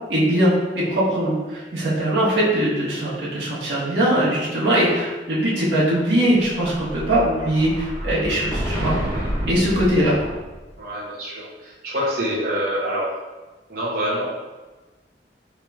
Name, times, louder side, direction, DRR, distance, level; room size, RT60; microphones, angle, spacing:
voice 1, 0.1-8.9 9.4-10.3, right 1 dB, 85° right, -7 dB, 1.2 m, -21 dB
Explosion, 6.1-10.7, equal, 20° left, 0.8 m, -29 dB
voice 2, 10.8-13.1 13.7-14.3, equal, 55° right, -8 dB, 0.8 m, -26 dB
4.6 x 3.0 x 2.3 m, 1.2 s
head